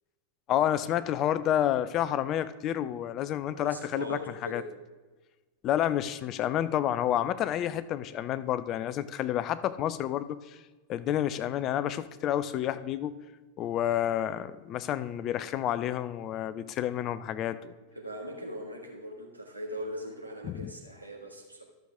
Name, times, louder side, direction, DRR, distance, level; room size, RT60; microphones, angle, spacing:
voice 1, 0.5-4.6 5.6-10.6 10.9-13.2 13.6-17.7 20.4-20.7, left 11 dB, 35° left, 14 dB, 0.4 m, -29 dB
voice 2, 3.5-4.7 17.9-21.6, equal, 85° right, 0 dB, 1.7 m, -40 dB
12.5 x 6.4 x 3.6 m, 1.3 s
figure-of-eight pair, 90°, 0 cm